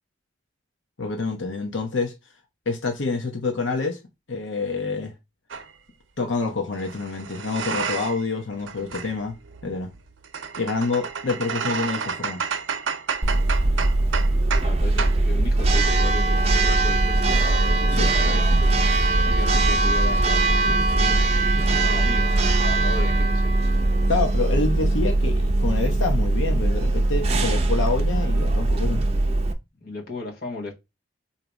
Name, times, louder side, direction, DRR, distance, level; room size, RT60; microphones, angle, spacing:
voice 1, 1.0-2.1 2.7-4.0 4.3-5.1 6.2-9.4 9.6-9.9 10.6-12.4 17.9-18.7 24.1-29.0, left 3 dB, 85° left, 0.9 m, -27 dB
sound 1, 5.5-5.7 6.7-8.3 8.6-14.7 15.0-15.2, right 6 dB, 85° right, 0.6 m, -31 dB
Church bell, 13.2-29.5, right 2 dB, 35° right, 0.6 m, -20 dB
voice 2, 13.6-14.0 14.6-17.2 19.2-21.3 21.8-23.6 29.8-30.7, left 3 dB, 50° left, 1.5 m, -35 dB
4.0 x 2.8 x 4.6 m
head